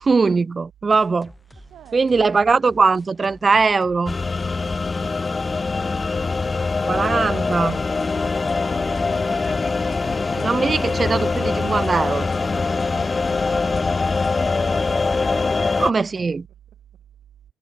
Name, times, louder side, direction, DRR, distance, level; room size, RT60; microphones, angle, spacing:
voice 1, 0.0-1.3 1.9-4.2 6.8-7.8 10.4-12.3 15.8-16.4, right 4 dB, 30° right, 0.5 m, -20 dB
sound 1, 0.9-6.4, left 1 dB, 10° left, 1.7 m, -49 dB
voice 2, 1.7-2.5 4.8-5.3 14.4-14.6 15.0-16.4, right 11 dB, 70° right, 7.1 m, -47 dB
sound 2, 4.1-15.9, left 4 dB, 30° left, 0.4 m, -23 dB
sound 3, 6.8-14.4, left 9 dB, 65° left, 0.7 m, -40 dB
cardioid pair, 90°, 0 cm